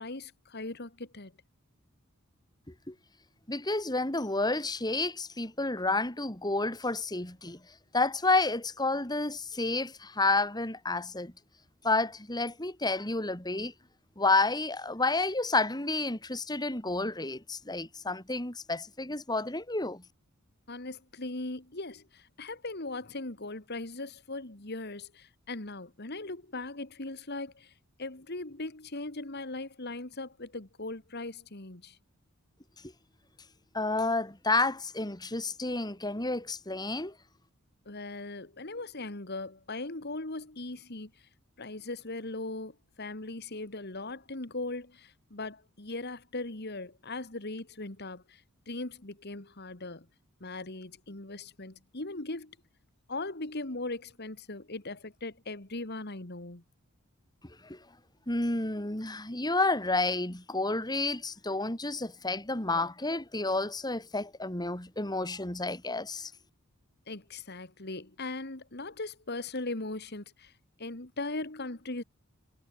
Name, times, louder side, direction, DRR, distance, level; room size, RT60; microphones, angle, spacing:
voice 1, 0.0-1.3 20.7-27.7 28.0-32.0 37.9-41.1 41.6-48.4 48.7-50.1 50.4-52.6 53.1-56.6 67.1-70.5 70.8-72.0, left 2 dB, 50° left, 2.3 m, -39 dB
voice 2, 3.5-7.6 7.9-11.3 11.8-13.7 14.2-20.0 33.7-37.1 57.6-57.8 58.3-66.3, left 2 dB, 20° left, 2.9 m, -30 dB
head